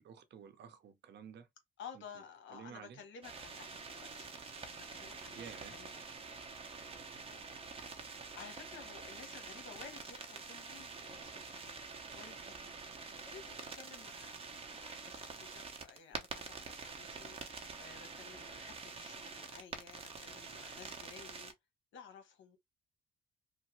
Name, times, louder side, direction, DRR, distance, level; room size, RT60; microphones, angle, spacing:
voice 1, 0.0-1.5 2.0-2.1 2.5-3.0 5.4-5.7, right 7 dB, 60° right, 0.7 m, -51 dB
voice 2, 1.8-6.5 8.3-11.8 12.2-12.7 13.1-14.3 14.8-21.5 21.9-22.6, left 6 dB, 75° left, 1.0 m, -54 dB
sound 1, 3.2-21.5, right 4 dB, 30° right, 0.8 m, -47 dB
3.1 x 2.1 x 2.9 m
cardioid pair, 90°, 20 cm